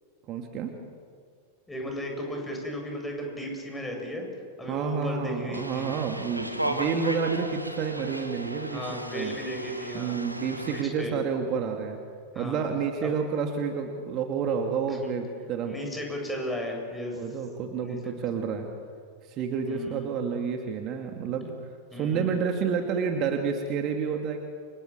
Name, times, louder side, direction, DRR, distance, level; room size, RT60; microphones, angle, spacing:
voice 1, 0.3-0.8 4.7-9.4 9.9-12.0 12.4-15.8 17.2-18.7 19.2-21.5 21.9-24.4, right 6 dB, 35° right, 4 dB, 2.5 m, -29 dB
voice 2, 1.7-4.2 4.6-5.9 8.7-10.2 10.6-11.2 12.3-12.6 13.0-13.1 15.6-17.2 17.8-18.0 19.7-20.1 21.9-22.4, equal, 10° left, 1 dB, 7.9 m, -35 dB
sound 1, 5.5-10.8, right 1 dB, 85° right, 2.2 m, -35 dB
29.5 x 27.5 x 7.3 m, 2.1 s
figure-of-eight pair, 90°, 0 cm